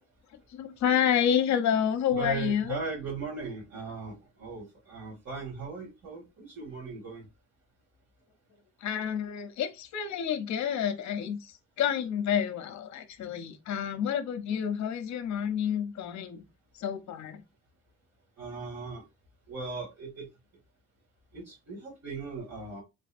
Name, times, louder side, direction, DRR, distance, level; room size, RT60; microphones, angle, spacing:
voice 1, 0.5-2.8 8.8-16.4 16.8-17.4, left 8 dB, 65° left, 0.7 m, -29 dB
voice 2, 2.1-7.3 18.4-19.0 19.5-20.3 21.3-22.8, right 4 dB, 60° right, 2.0 m, -38 dB
3.6 x 3.3 x 2.5 m
cardioid pair, 90°, 30 cm